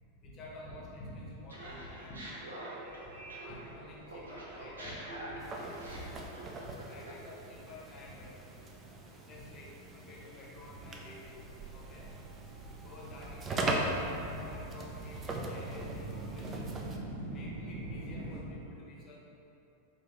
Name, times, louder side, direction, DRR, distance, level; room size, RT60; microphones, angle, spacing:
voice 1, 0.2-2.9 3.4-5.7 6.6-8.3 9.2-11.5 11.7-12.1 12.8-16.7 17.1-19.2, left 1 dB, 30° left, -4 dB, 0.8 m, -49 dB
Laughter, 1.5-3.8 4.1-7.3, right 1 dB, 70° right, 0.7 m, -45 dB
Subway metro underground, 2.8-18.4, right 2 dB, 50° right, 1.0 m, -46 dB
sound 1, 5.4-17.0, right 2 dB, 20° right, 0.4 m, -40 dB
4.8 x 2.5 x 3.0 m, 2.8 s
figure-of-eight pair, 90°, 0 cm